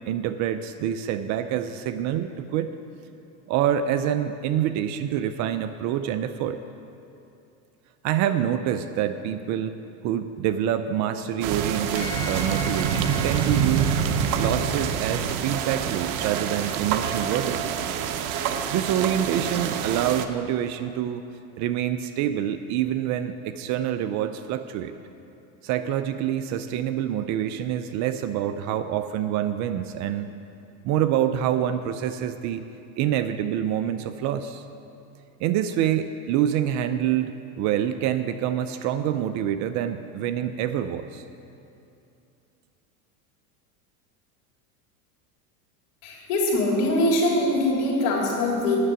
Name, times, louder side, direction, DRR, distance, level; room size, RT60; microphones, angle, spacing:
voice 1, 0.0-2.7 3.5-6.6 8.0-14.0 14.4-17.8 18.7-21.2 21.6-24.9 25.6-30.3 30.8-32.6 33.0-34.6 35.4-41.2, right 10 dB, 40° right, 10 dB, 0.5 m, -26 dB
sound 1, 11.4-20.3, right 7 dB, 60° right, 0.9 m, -26 dB
sound 2, 11.9-15.0, equal, 25° left, 1.5 m, -38 dB
voice 2, 46.0-48.8, left 1 dB, 65° left, -2 dB, 3.3 m, -23 dB
9.6 x 6.8 x 8.8 m, 2.7 s
supercardioid pair, 120°, 45 cm